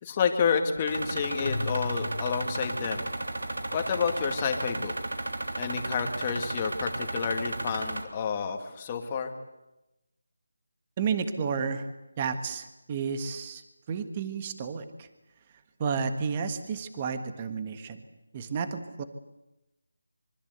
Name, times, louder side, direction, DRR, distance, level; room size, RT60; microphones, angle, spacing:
voice 1, 0.0-3.1 3.7-5.0 5.6-9.3, left 6 dB, 20° left, 5 dB, 2.1 m, -29 dB
sound 1, 0.9-8.0, right 2 dB, 80° right, 3.5 m, -34 dB
Keyboard (musical), 1.4-3.7, left 2 dB, 80° left, 2.0 m, -37 dB
voice 2, 11.0-11.8 12.2-13.6 13.9-15.1 15.8-18.0 18.3-19.0, right 6 dB, 20° right, 10 dB, 1.5 m, -31 dB
25.5 x 24.0 x 8.2 m, 0.96 s
figure-of-eight pair, 170°, 0 cm